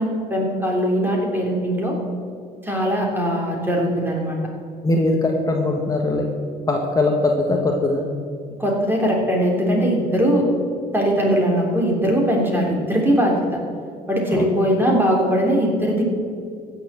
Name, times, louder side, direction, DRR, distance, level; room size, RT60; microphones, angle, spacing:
voice 1, 0.0-1.9 2.6-4.4 8.6-10.5 10.9-13.6 14.1-16.0, equal, 10° right, -1 dB, 3.2 m, -20 dB
voice 2, 4.8-6.3 6.7-8.0 14.3-14.5, left 2 dB, 20° left, 1 dB, 1.4 m, -20 dB
15.0 x 7.2 x 7.5 m, 2.2 s
cardioid pair, 110°, 17 cm